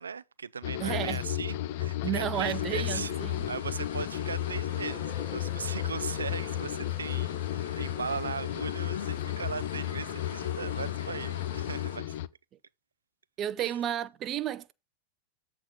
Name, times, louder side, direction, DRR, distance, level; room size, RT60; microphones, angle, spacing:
voice 1, 0.0-12.2 13.6-13.8, right 6 dB, 90° right, 0.4 m, -38 dB
sound 1, 0.6-12.3, left 13 dB, 60° left, 0.5 m, -34 dB
voice 2, 0.8-1.2 2.0-3.4 13.4-14.7, right 11 dB, 35° right, 0.6 m, -32 dB
sound 2, 2.3-12.0, left 6 dB, 80° left, 1.6 m, -42 dB
sound 3, 4.9-10.8, left 2 dB, ahead, 4.3 m, -52 dB
7.6 x 3.8 x 6.2 m
hypercardioid pair, 100°, 0 cm